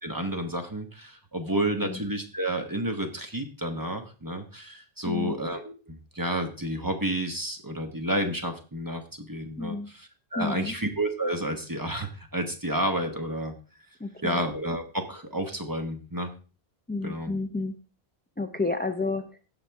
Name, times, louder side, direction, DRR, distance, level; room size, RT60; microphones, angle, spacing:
voice 1, 0.0-13.5 14.2-16.3 17.0-17.3, right 1 dB, 20° right, 5 dB, 1.1 m, -30 dB
voice 2, 5.0-5.4 9.6-9.9 10.3-10.7 14.0-14.4 16.9-17.8 18.4-19.2, left 3 dB, 10° left, 6 dB, 0.5 m, -30 dB
16.0 x 5.9 x 3.5 m, 0.34 s
omnidirectional pair, 1.1 m